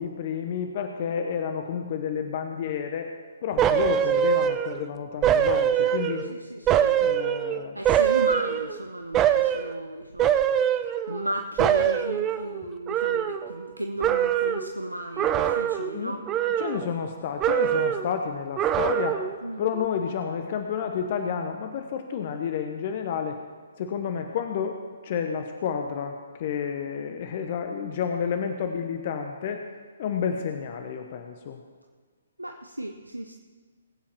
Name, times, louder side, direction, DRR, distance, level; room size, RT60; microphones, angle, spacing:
voice 1, 0.0-3.1 3.4-6.2 7.0-7.8 15.9-16.2 16.6-19.2 19.6-23.4 23.8-29.6 30.0-31.6, left 7 dB, 40° left, 6 dB, 0.9 m, -30 dB
sound 1, 3.6-4.9 5.2-6.3 6.7-8.8 9.1-9.7 10.2-11.3 11.6-13.7 14.0-14.7 15.2-16.0 16.3-17.1 17.4-18.1 18.6-19.4 19.7-19.8, right 10 dB, 20° right, 0.6 m, -24 dB
voice 2, 5.8-7.0 7.7-10.7 11.1-16.4 19.4-19.7 32.4-33.3, right 1 dB, 85° right, 6 dB, 0.8 m, -34 dB
20.5 x 8.6 x 4.4 m, 1.5 s
figure-of-eight pair, 130°, 0 cm